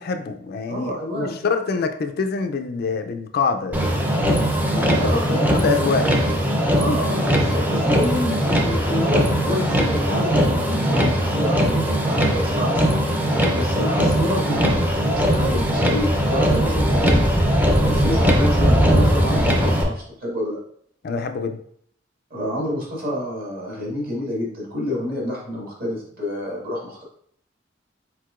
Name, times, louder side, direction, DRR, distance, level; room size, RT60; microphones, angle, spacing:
voice 1, 0.0-4.4 5.0-6.1 21.0-21.6, left 5 dB, 55° left, 6 dB, 0.4 m, -25 dB
voice 2, 0.7-1.4 4.7-5.9 6.7-12.8 13.5-17.2 17.8-20.6 22.3-27.0, left 1 dB, 50° right, -3 dB, 1.7 m, -28 dB
Motor vehicle (road), 3.7-19.8, equal, 10° right, 0.5 m, -20 dB
4.6 x 4.2 x 2.4 m, 0.62 s
head